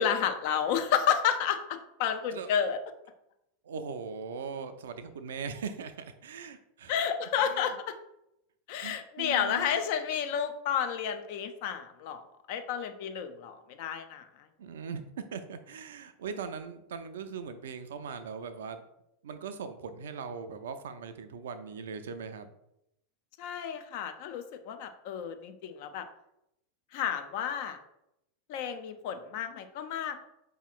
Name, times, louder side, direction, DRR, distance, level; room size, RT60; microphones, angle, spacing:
voice 1, 0.0-2.8 6.9-8.0 8.7-12.2 12.5-14.3 23.4-26.0 26.9-27.8 28.5-30.3, left 8 dB, 55° left, 8 dB, 0.4 m, -31 dB
voice 2, 3.6-7.0 7.4-7.8 8.8-9.8 14.6-15.0 15.3-18.8 19.2-22.5, right 6 dB, 65° right, 10 dB, 0.3 m, -40 dB
4.7 x 2.8 x 2.3 m, 0.83 s
figure-of-eight pair, 85°, 0 cm